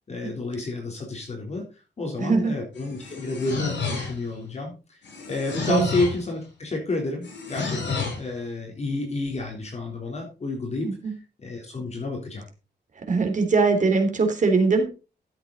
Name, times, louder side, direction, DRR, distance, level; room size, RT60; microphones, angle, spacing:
voice 1, 0.1-1.6 2.0-4.7 5.3-10.9 11.4-12.4, left 2 dB, 35° left, 1 dB, 3.7 m, -30 dB
voice 2, 2.2-2.5 5.7-5.9 10.8-11.1 13.1-14.8, right 4 dB, 40° right, 5 dB, 3.3 m, -21 dB
sound 1, 2.7-4.3 5.0-6.3 7.2-8.3, left 4 dB, 75° left, 7.8 m, -31 dB
13.0 x 8.0 x 4.0 m, 0.32 s
wide cardioid pair, 130°, 19 cm